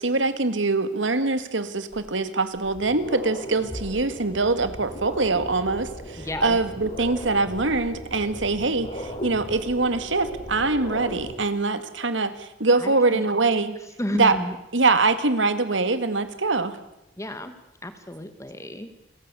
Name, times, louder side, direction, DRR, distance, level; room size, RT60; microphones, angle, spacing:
voice 1, 0.0-13.8 14.1-14.4 14.7-16.8, right 3 dB, 90° right, 11 dB, 1.9 m, -23 dB
sound 1, 1.9-2.0 2.5-11.3, equal, 35° left, 3.6 m, -37 dB
voice 2, 6.2-6.6 12.8-13.2 14.0-14.5 17.2-17.5 17.8-18.9, left 1 dB, 15° left, 9 dB, 1.7 m, -32 dB
30.0 x 15.0 x 8.3 m, 0.88 s
head